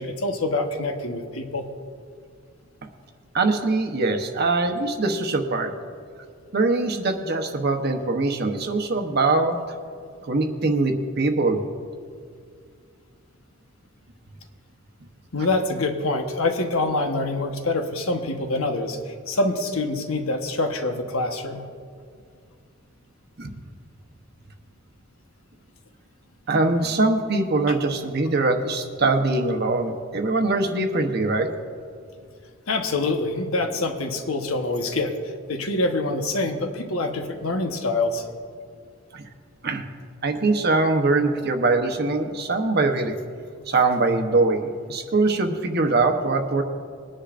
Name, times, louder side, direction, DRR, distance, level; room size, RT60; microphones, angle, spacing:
voice 1, 0.0-1.7 15.3-21.6 27.7-27.8 32.7-35.1 35.5-38.2, left 2 dB, 85° left, 5 dB, 1.1 m, -25 dB
voice 2, 3.3-5.7 6.5-9.6 10.2-11.6 23.4-23.6 26.5-31.5 39.1-39.2 39.6-39.8 40.2-43.2 43.7-46.6, right 3 dB, 50° right, 4 dB, 0.9 m, -22 dB
21.5 x 10.0 x 2.5 m, 2.2 s
head